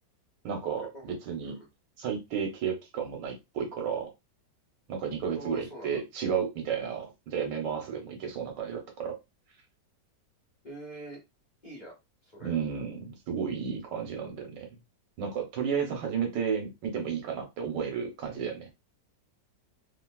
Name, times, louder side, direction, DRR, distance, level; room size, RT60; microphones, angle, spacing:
voice 1, 0.4-1.6 2.0-4.1 4.9-9.1 12.4-14.7 15.2-18.7, right 7 dB, 85° right, 3 dB, 1.6 m, -32 dB
voice 2, 5.3-6.0 10.6-11.2 11.6-12.0 12.2-12.5, right 1 dB, 30° left, -4 dB, 0.9 m, -44 dB
3.3 x 2.6 x 2.3 m, 0.22 s
omnidirectional pair, 1.9 m